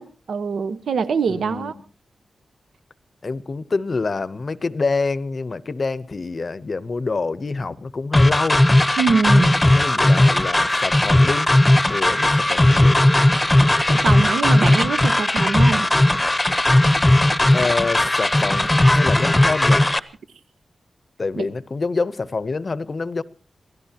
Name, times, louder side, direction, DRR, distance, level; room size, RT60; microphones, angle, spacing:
voice 1, 0.0-1.7 9.0-9.6 13.9-15.9 21.4-21.5, right 5 dB, 85° right, 1.2 m, -23 dB
voice 2, 1.3-1.8 3.2-8.7 9.6-11.5 11.9-13.1 17.5-19.9 21.2-23.2, left 3 dB, 40° left, 0.7 m, -26 dB
sound 1, 8.1-20.0, left 1 dB, 15° left, 0.8 m, -17 dB
27.0 x 17.5 x 2.9 m
wide cardioid pair, 135°, 0 cm